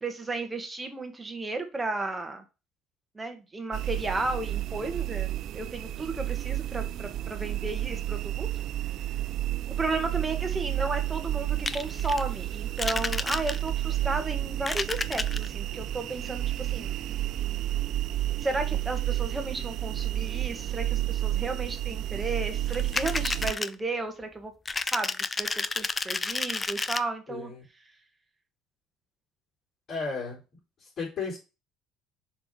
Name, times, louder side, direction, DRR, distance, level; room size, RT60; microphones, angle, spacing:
voice 1, 0.0-2.4 3.1-8.5 9.7-17.0 18.4-24.5 24.9-27.5, right 3 dB, 15° right, 6 dB, 1.6 m, -33 dB
sound 1, 3.7-23.5, right 13 dB, 60° right, 0.3 m, -31 dB
sound 2, 11.7-12.2 12.8-13.8 14.5-15.5 22.7-23.7 24.7-27.0, left 3 dB, 20° left, 0.5 m, -31 dB
voice 2, 27.3-27.6 29.9-30.4 30.8-31.4, left 4 dB, 45° left, -4 dB, 3.8 m, -34 dB
6.3 x 3.8 x 4.9 m, 0.29 s
supercardioid pair, 100°, 0 cm